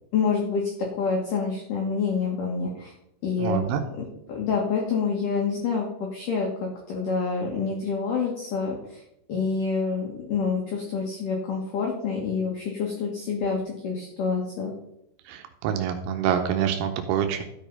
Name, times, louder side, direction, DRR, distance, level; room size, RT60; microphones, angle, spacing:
voice 1, 0.1-2.9 3.2-3.6 4.0-9.0 9.3-14.7, left 5 dB, 60° left, -1 dB, 2.4 m, -27 dB
voice 2, 3.4-3.8 15.3-17.4, right 9 dB, 85° right, 6 dB, 3.2 m, -26 dB
13.0 x 5.3 x 5.3 m, 0.81 s
omnidirectional pair, 5.4 m